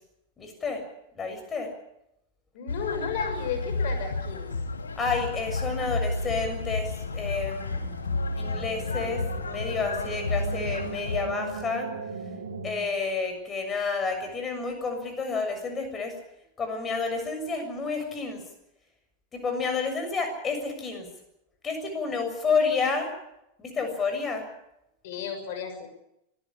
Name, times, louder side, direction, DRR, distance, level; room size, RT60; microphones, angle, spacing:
voice 1, 0.4-0.8 1.2-1.7 5.0-7.8 8.4-11.9 12.6-16.1 16.6-18.4 19.3-21.1 21.6-23.1 23.6-24.5, left 4 dB, 20° left, 6 dB, 6.9 m, -30 dB
voice 2, 2.5-4.5 25.0-25.9, left 6 dB, 50° left, 6 dB, 6.5 m, -33 dB
sound 1, 2.7-11.2, left 3 dB, 75° left, 2.2 m, -31 dB
sound 2, 6.8-12.7, right 4 dB, 70° right, 3.2 m, -39 dB
26.0 x 15.5 x 8.8 m, 0.84 s
figure-of-eight pair, 90°, 0 cm